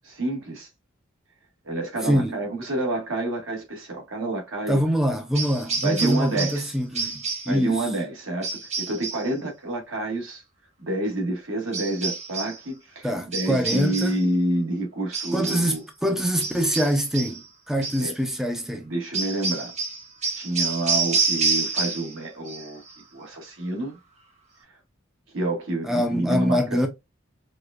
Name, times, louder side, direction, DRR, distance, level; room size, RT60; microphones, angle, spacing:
voice 1, 0.0-0.7 1.6-4.8 5.8-6.7 7.5-10.4 10.8-15.8 18.0-18.1 18.8-19.7 20.3-22.8 23.1-24.0 24.7-24.8 25.3-26.8, right 2 dB, 75° right, 1.6 m, -28 dB
voice 2, 2.0-2.4 4.7-7.9 13.0-14.2 15.3-18.9 25.8-26.9, equal, ahead, 0.5 m, -24 dB
sound 1, 5.3-6.7 6.9-7.6 8.4-9.3 11.7-12.6 13.3-14.2 15.1-15.7 16.4-17.4 17.8-18.1 19.1-22.2 22.5-22.9, right 4 dB, 35° right, 1.1 m, -28 dB
4.8 x 2.4 x 2.4 m
head